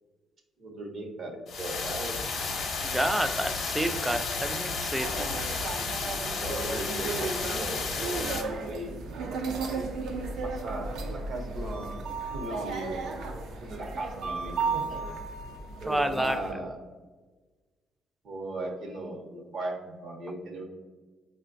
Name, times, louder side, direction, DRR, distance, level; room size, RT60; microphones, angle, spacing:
voice 1, 0.6-2.2 5.2-5.6 6.3-8.9 10.4-12.0 12.3-13.0 13.6-15.0 15.8-16.8 18.2-20.6, right 2 dB, 65° right, 2 dB, 0.8 m, -38 dB
sound 1, 1.5-8.4, left 4 dB, 70° left, 0.6 m, -32 dB
voice 2, 2.8-5.3 15.9-16.4, right 1 dB, 5° right, 8 dB, 0.3 m, -29 dB
sound 2, 4.9-16.5, right 4 dB, 85° right, 0.4 m, -35 dB
5.0 x 2.2 x 2.5 m, 1.3 s
cardioid pair, 90°, 0 cm